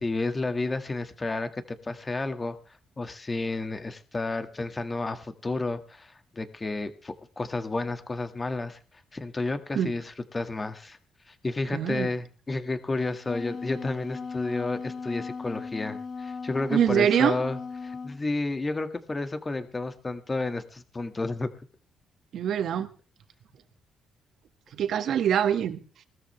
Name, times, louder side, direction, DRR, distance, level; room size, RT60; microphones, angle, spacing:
voice 1, 0.0-2.6 3.0-8.8 9.1-11.0 11.3-21.5, left 2 dB, 25° left, 2.1 m, -31 dB
voice 2, 11.7-12.1 16.7-17.4 22.3-22.9 24.7-25.8, right 9 dB, 70° right, 1.9 m, -24 dB
Wind instrument woodwind instrument, 13.0-18.2, left 4 dB, 55° left, 2.2 m, -37 dB
20.0 x 13.5 x 3.4 m
cardioid pair, 90°, 0 cm